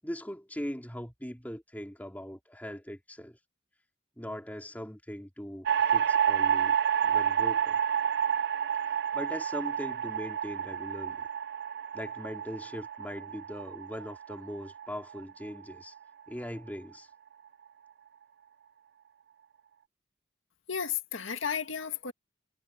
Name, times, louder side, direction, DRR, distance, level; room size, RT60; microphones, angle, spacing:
voice 1, 0.0-3.4 4.2-6.8 7.0-7.8 9.1-11.3 11.9-15.9 16.3-17.1, equal, 10° left, 3.1 m, -40 dB
sound 1, 5.7-16.0, right 8 dB, 55° right, 0.3 m, -29 dB
voice 2, 20.7-22.1, left 7 dB, 85° left, 2.0 m, -33 dB
head